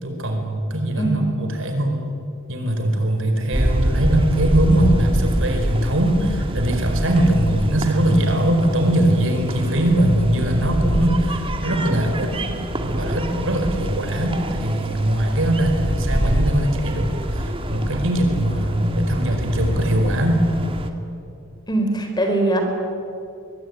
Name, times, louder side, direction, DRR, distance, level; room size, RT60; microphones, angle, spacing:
voice 1, 0.0-2.1 2.5-20.5, right 1 dB, 65° right, 4 dB, 4.7 m, -21 dB
sound 1, 3.5-20.9, right 1 dB, 25° right, 1.9 m, -26 dB
voice 2, 21.7-22.6, right 2 dB, 20° left, 3 dB, 4.4 m, -21 dB
23.5 x 23.0 x 9.6 m, 2.6 s
head